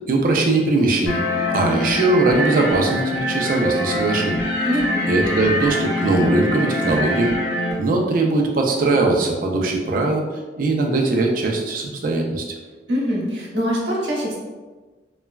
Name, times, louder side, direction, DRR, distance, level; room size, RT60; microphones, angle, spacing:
voice 1, 0.1-1.2 1.5-4.4 5.1-7.3 7.8-10.2 10.6-12.4, right 2 dB, 50° right, 1 dB, 0.4 m, -20 dB
sound 1, 1.1-7.7, left 1 dB, 65° left, 0.8 m, -24 dB
voice 2, 4.7-5.1 12.9-14.4, equal, 85° right, -5 dB, 0.9 m, -23 dB
3.1 x 2.2 x 2.3 m, 1.3 s
head